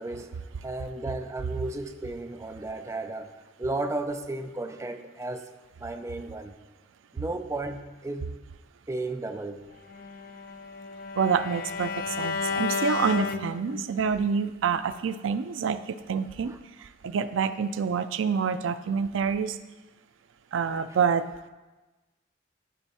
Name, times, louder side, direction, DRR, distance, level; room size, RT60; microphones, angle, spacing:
voice 1, 0.0-3.3 3.6-5.4 5.8-6.5 7.1-8.3 8.9-9.6, right 2 dB, 15° right, 6 dB, 0.4 m, -34 dB
Bowed string instrument, 9.9-14.1, left 5 dB, 50° left, 0.4 m, -32 dB
voice 2, 11.2-16.5 17.0-19.6 20.5-21.3, right 6 dB, 80° right, 12 dB, 0.4 m, -27 dB
11.0 x 4.6 x 4.2 m, 1.2 s
head